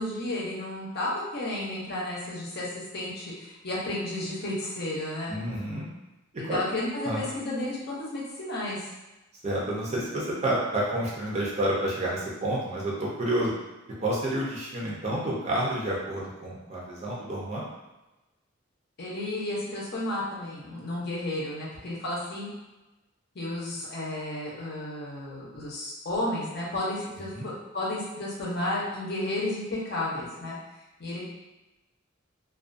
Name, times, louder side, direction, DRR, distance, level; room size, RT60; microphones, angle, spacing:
voice 1, 0.0-2.7 2.9-5.4 6.4-8.9 19.0-22.5 23.3-30.6 31.0-31.2, left 1 dB, 55° left, -5 dB, 0.7 m, -32 dB
voice 2, 5.3-5.8 6.4-6.6 7.1-7.3 9.4-13.5 14.0-17.6 27.3-27.5, right 1 dB, 35° right, -5 dB, 0.6 m, -29 dB
2.4 x 2.2 x 2.5 m, 1.0 s
head